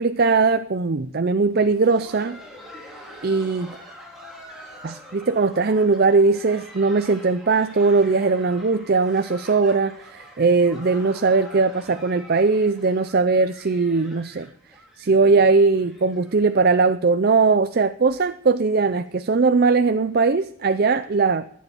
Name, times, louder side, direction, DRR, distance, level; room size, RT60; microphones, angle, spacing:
voice 1, 0.0-2.4 3.2-3.8 4.8-14.5 15.0-21.4, right 4 dB, 45° right, 0.5 m, -20 dB
Laughter, 1.5-17.1 17.4-17.5 18.1-18.2 18.7-18.9 20.0-20.1, equal, ahead, 3.4 m, -45 dB
14.5 x 9.4 x 7.0 m
head